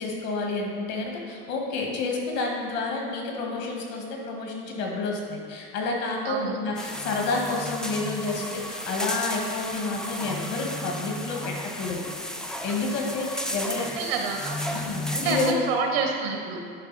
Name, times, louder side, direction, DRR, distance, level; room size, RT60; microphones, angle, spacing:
voice 1, 0.0-12.1 12.6-13.9 14.7-15.6, left 3 dB, 60° left, 0 dB, 1.8 m, -30 dB
sound 1, 6.7-15.5, left 1 dB, ahead, 0.4 m, -33 dB
voice 2, 14.0-14.8 15.1-16.6, right 4 dB, 90° right, 1 dB, 1.3 m, -28 dB
11.0 x 4.0 x 4.1 m, 2.4 s
supercardioid pair, 115°, 29 cm